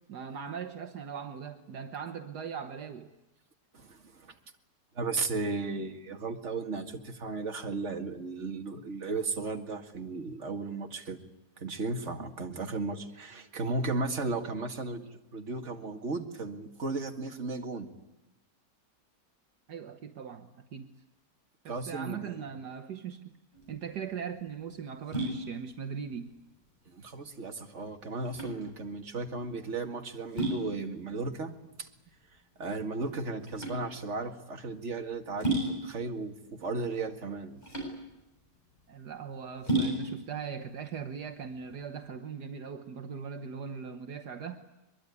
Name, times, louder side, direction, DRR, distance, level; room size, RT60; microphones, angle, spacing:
voice 1, 0.1-3.1 19.7-20.9 21.7-23.3 23.7-26.3 38.9-44.6, right 7 dB, 70° right, 7 dB, 1.7 m, -40 dB
voice 2, 3.7-4.3 4.9-11.2 11.6-17.9 21.7-22.5 26.9-31.5 31.8-31.9 32.6-37.6, right 3 dB, 40° right, 4 dB, 2.3 m, -35 dB
sound 1, 23.5-42.1, right 1 dB, 25° left, 7.8 m, -36 dB
23.0 x 22.5 x 9.7 m, 0.95 s
omnidirectional pair, 1.9 m